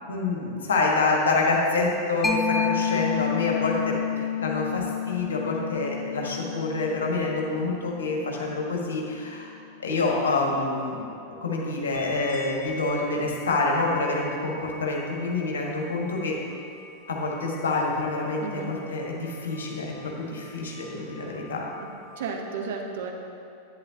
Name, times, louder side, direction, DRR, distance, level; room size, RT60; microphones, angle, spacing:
voice 1, 0.0-9.5 9.8-11.1 11.4-16.4 17.1-21.6, left 3 dB, 65° left, -2 dB, 1.5 m, -27 dB
Mallet percussion, 2.2-9.5, left 7 dB, 10° left, 0.7 m, -30 dB
sound 1, 11.9-22.3, left 1 dB, 30° right, 2.2 m, -46 dB
voice 2, 18.4-18.7 21.8-21.9 22.2-23.1, right 5 dB, 55° right, 2 dB, 1.0 m, -33 dB
10.5 x 9.1 x 2.9 m, 2.7 s
figure-of-eight pair, 90°, 0 cm